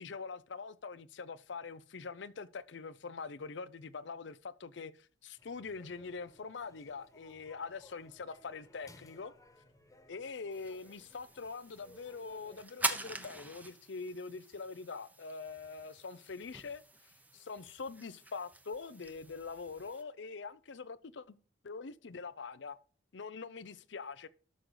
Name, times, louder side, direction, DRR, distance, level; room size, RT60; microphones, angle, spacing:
voice 1, 0.0-4.9 5.2-9.3 10.1-16.8 17.3-21.4 21.6-22.8 23.1-24.3, left 4 dB, 70° left, 0.6 m, -44 dB
sound 1, 5.4-12.6, left 2 dB, 20° left, 1.4 m, -61 dB
sound 2, 10.5-20.0, right 2 dB, 10° right, 0.9 m, -44 dB
13.0 x 6.5 x 3.9 m
head